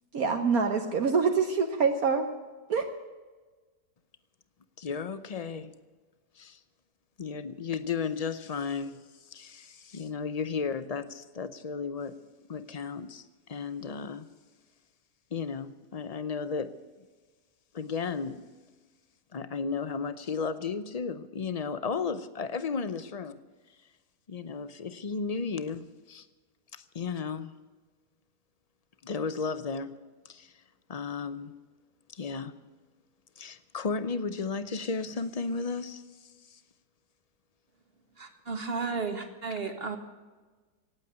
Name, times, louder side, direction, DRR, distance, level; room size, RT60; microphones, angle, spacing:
voice 1, 0.1-2.3 2.7-2.9, right 5 dB, 60° right, 1.5 m, -25 dB
voice 2, 4.8-5.7 6.4-6.6 7.2-9.0 9.3-12.2 12.5-13.2 13.5-14.3 15.3-16.8 17.7-18.4 19.3-23.4 24.3-26.2 26.7-27.5 29.0-30.0 30.2-30.5 30.9-31.5 32.1-32.6 33.4-36.6, left 5 dB, 60° left, 0.4 m, -34 dB
voice 3, 38.2-40.0, right 4 dB, 35° right, 1.8 m, -33 dB
17.5 x 8.8 x 9.3 m
omnidirectional pair, 1.8 m